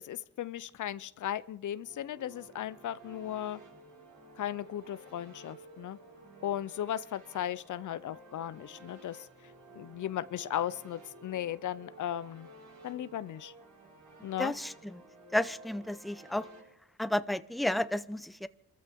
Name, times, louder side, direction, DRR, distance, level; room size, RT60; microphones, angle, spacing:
voice 1, 0.0-3.6 4.4-6.0 6.4-9.3 9.7-12.5 12.8-13.5 14.2-14.5, left 11 dB, 75° left, 17 dB, 0.6 m, -36 dB
sound 1, 1.8-16.6, right 2 dB, 70° right, 5.1 m, -54 dB
voice 2, 14.4-15.0 15.3-16.5 17.0-18.5, left 1 dB, ahead, 14 dB, 0.7 m, -32 dB
25.5 x 14.0 x 3.6 m, 0.78 s
cardioid pair, 60°, 30 cm